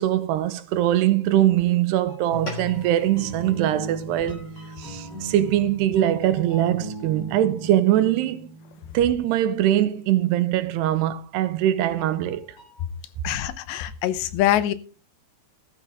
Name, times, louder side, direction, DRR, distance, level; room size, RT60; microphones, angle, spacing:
voice 1, 0.0-4.5 4.8-8.5 8.9-12.5, right 12 dB, 80° right, 2.9 m, -22 dB
sound 1, 2.1-9.8 12.0-12.8, right 2 dB, 50° left, 6.5 m, -39 dB
sound 2, 2.3-6.9, left 1 dB, 20° left, 2.6 m, -41 dB
voice 2, 13.2-14.7, left 13 dB, 85° left, 3.1 m, -24 dB
13.5 x 13.0 x 3.5 m
omnidirectional pair, 4.9 m